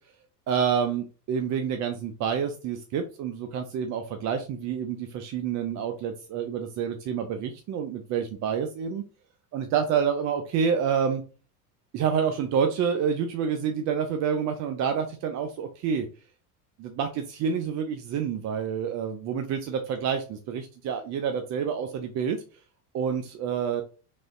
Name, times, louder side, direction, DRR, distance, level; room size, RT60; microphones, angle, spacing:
voice 1, 0.5-9.0 9.5-11.2 11.9-16.1 16.8-22.4 22.9-23.8, right 7 dB, 40° right, 6 dB, 0.4 m, -28 dB
3.3 x 2.6 x 2.4 m, 0.36 s
hypercardioid pair, 95°, 47 cm